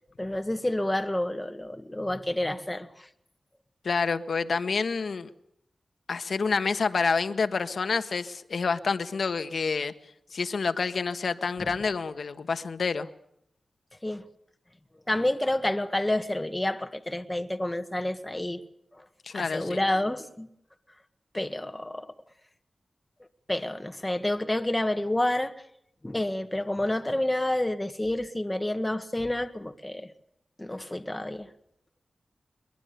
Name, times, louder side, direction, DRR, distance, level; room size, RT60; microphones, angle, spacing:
voice 1, 0.2-3.1 11.6-11.7 14.0-14.3 15.1-18.6 18.9-19.0 19.3-20.5 21.3-22.1 23.5-25.5 26.0-30.1 30.6-31.5, left 1 dB, 15° left, 1.6 m, -29 dB
voice 2, 3.8-5.3 6.1-9.9 10.3-13.1 19.2-19.8, left 5 dB, 70° left, 1.5 m, -28 dB
22.5 x 22.5 x 6.9 m
wide cardioid pair, 110°, 0 cm